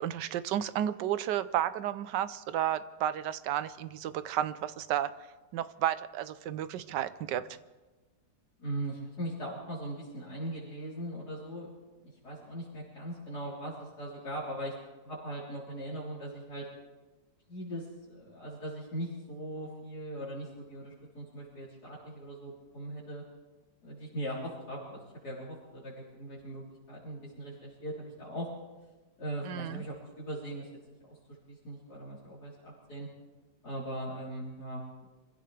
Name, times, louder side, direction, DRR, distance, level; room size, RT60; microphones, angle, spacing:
voice 1, 0.0-5.1 5.5-7.4 29.4-29.8, right 11 dB, 75° right, 14 dB, 1.3 m, -32 dB
voice 2, 8.6-11.7 12.0-14.7 15.0-16.7 17.5-23.2 23.8-28.5 29.2-30.7 31.1-31.2 31.5-33.1 33.6-35.1, right 1 dB, 60° left, -8 dB, 4.3 m, -40 dB
26.0 x 16.0 x 3.4 m, 1.2 s
omnidirectional pair, 2.0 m